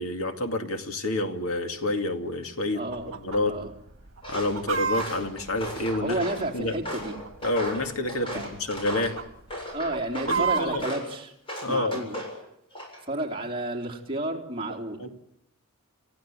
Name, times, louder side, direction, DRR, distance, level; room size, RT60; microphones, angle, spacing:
voice 1, 0.0-2.8 3.2-3.6 4.3-6.1 6.5-6.8 7.4-9.2 10.3-10.9 11.6-12.0 15.0-15.1, left 2 dB, 75° left, 5 dB, 2.3 m, -28 dB
voice 2, 2.7-3.1 3.5-3.7 6.0-7.1 8.3-8.5 9.7-11.3 11.7-12.2 13.1-15.1, right 2 dB, 25° right, 1 dB, 3.4 m, -31 dB
Chicken rooster, 2.9-3.4 3.7-3.8 4.2-6.5 7.2-7.9 8.2-8.5 8.8-9.2 9.7-10.8, right 5 dB, 65° right, 1.6 m, -30 dB
Walk footsteps, 4.2-4.6 4.9-6.4 6.8-9.2 9.5-10.4 10.8-11.1 11.5-12.4 12.7-13.2, equal, 25° left, 7.6 m, -36 dB
28.5 x 15.5 x 8.9 m, 0.79 s
head